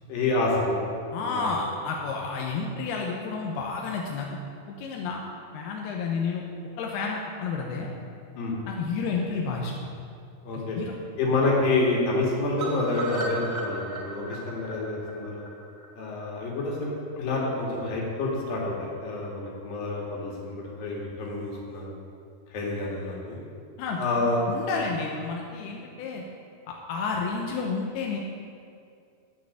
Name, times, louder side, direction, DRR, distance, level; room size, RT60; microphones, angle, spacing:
voice 1, 0.1-0.8 1.2-1.5 8.4-8.6 10.4-10.8 11.2-15.4 16.0-21.9 22.5-23.4 24.0-24.4 24.7-24.8, left 2 dB, 65° left, -3 dB, 4.0 m, -28 dB
voice 2, 1.1-4.3 4.7-5.2 5.5-6.4 6.8-7.9 8.7-9.9 10.5-10.9 23.8-26.2 26.7-28.2, left 4 dB, 90° left, 0 dB, 3.0 m, -31 dB
sound 1, 12.6-16.6 16.9-17.0 17.3-17.4 17.7-17.8, right 3 dB, 50° right, 2.2 m, -36 dB
13.5 x 6.6 x 8.1 m, 2.4 s
omnidirectional pair, 4.5 m